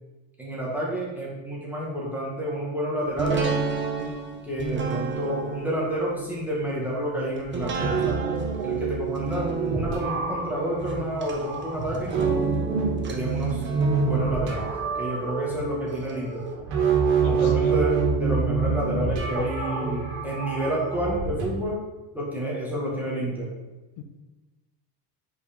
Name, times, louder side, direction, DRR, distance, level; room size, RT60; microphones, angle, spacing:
voice 1, 0.4-3.5 4.4-8.2 8.6-12.1 13.1-13.6 14.0-14.7 15.0-16.4 17.2-21.8 22.1-23.5, right 1 dB, 5° right, -5 dB, 1.7 m, -29 dB
sound 1, 3.2-16.1 16.5-16.6, right 4 dB, 25° right, 0.9 m, -33 dB
sound 2, 7.8-21.4, right 5 dB, 85° right, 2.1 m, -27 dB
voice 2, 17.2-17.8 24.0-24.1, left 6 dB, 75° left, 6 dB, 1.0 m, -37 dB
5.1 x 4.9 x 5.2 m, 1.1 s
cardioid pair, 150°, 47 cm